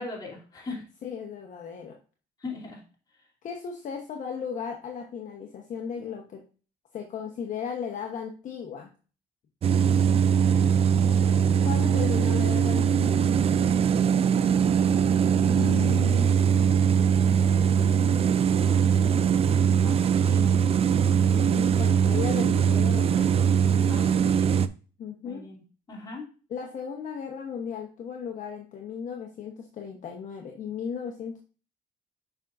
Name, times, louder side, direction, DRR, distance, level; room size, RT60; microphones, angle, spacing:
voice 1, 0.0-0.8 2.4-2.8 11.7-12.0 15.5-16.5 19.6-20.6 23.9-24.6 25.2-25.6 25.9-26.3, left 3 dB, 25° left, -2 dB, 2.8 m, -38 dB
voice 2, 1.0-2.0 3.4-6.4 6.9-8.9 11.6-13.3 21.3-23.4 25.0-25.5 26.5-31.4, left 7 dB, 50° left, 2 dB, 1.0 m, -36 dB
sound 1, 9.6-24.7, right 7 dB, 35° right, 0.4 m, -21 dB
7.2 x 5.4 x 2.5 m, 0.37 s
cardioid pair, 110°, 17 cm